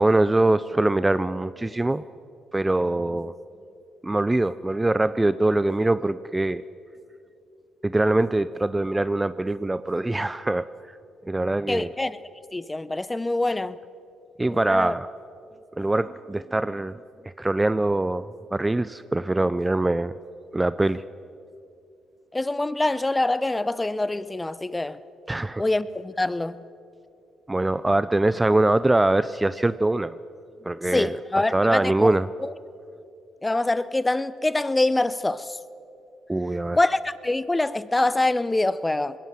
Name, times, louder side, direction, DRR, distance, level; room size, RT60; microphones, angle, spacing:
voice 1, 0.0-2.0 2.5-3.3 4.0-6.6 7.8-10.7 11.3-11.9 14.4-15.1 15.8-17.0 17.4-20.1 20.5-21.0 25.3-25.6 27.5-30.2 30.6-31.2 31.5-32.3 36.3-36.8, right 2 dB, 15° right, 15 dB, 0.4 m, -23 dB
voice 2, 11.7-12.2 12.5-13.8 14.5-14.9 22.3-25.0 25.6-26.6 30.9-32.1 32.4-32.5 33.4-35.6 36.8-39.2, left 2 dB, 15° left, 16 dB, 0.7 m, -25 dB
21.0 x 17.5 x 7.6 m, 2.7 s
cardioid pair, 90°, 0 cm